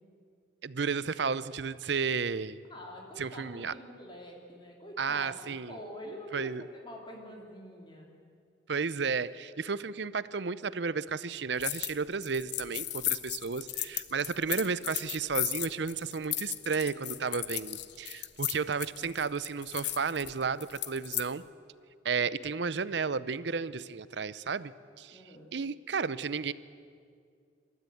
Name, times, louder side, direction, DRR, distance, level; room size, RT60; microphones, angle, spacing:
voice 1, 0.6-2.6 3.2-3.7 5.0-5.8 6.3-6.6 8.7-21.4 22.0-24.7 25.0-25.2 25.5-26.5, right 5 dB, 65° right, 17 dB, 0.6 m, -33 dB
voice 2, 2.7-8.1 25.1-25.5, equal, 25° left, 0 dB, 3.3 m, -46 dB
sound 1, 11.6-12.0 12.2-21.3, left 14 dB, 65° left, 1.0 m, -35 dB
27.5 x 13.5 x 9.3 m, 2.3 s
head